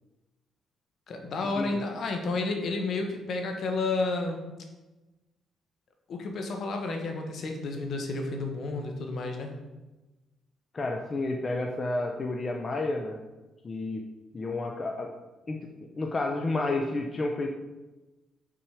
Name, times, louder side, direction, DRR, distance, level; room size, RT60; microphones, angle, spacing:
voice 1, 1.1-4.4 6.1-9.5, left 3 dB, 60° left, 3 dB, 1.4 m, -31 dB
voice 2, 10.7-13.2 13.6-14.0 14.3-15.1 15.5-17.5, left 2 dB, 35° left, 2 dB, 0.8 m, -31 dB
6.2 x 6.1 x 4.9 m, 1.1 s
cardioid pair, 90°, 0 cm